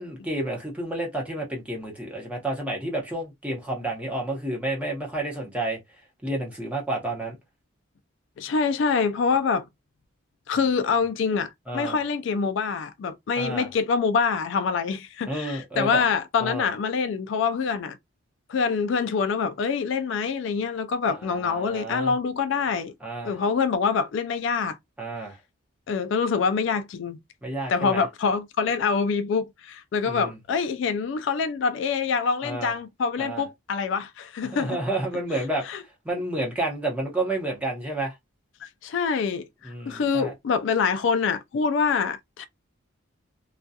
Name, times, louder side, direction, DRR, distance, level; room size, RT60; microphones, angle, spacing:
voice 1, 0.0-5.8 6.2-7.4 11.7-12.0 13.4-13.7 15.3-16.0 16.4-16.7 21.1-22.1 23.0-23.4 25.0-25.4 27.4-28.0 30.0-30.4 32.4-32.7 33.2-33.4 34.4-38.1 39.6-40.3, right 2 dB, 5° right, 0.8 m, -30 dB
voice 2, 8.4-9.6 10.5-18.0 18.5-22.9 23.2-24.8 25.9-27.2 27.7-34.8 35.7-35.8 38.6-42.5, left 5 dB, 65° left, 0.3 m, -25 dB
2.3 x 2.2 x 2.6 m
head